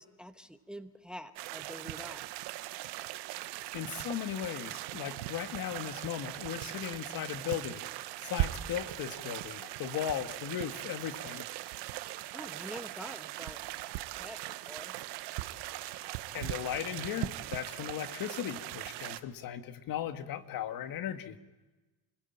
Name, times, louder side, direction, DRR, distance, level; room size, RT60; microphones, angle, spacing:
voice 1, 0.0-2.5 12.3-13.6 14.0-14.9, equal, ahead, 9 dB, 1.1 m, -46 dB
sound 1, 1.4-19.2, right 16 dB, 80° right, 1.2 m, -39 dB
voice 2, 3.7-7.8 8.2-11.4 16.3-21.4, left 10 dB, 60° left, 9 dB, 1.6 m, -37 dB
29.0 x 16.0 x 8.9 m, 1.2 s
cardioid pair, 105°, 40 cm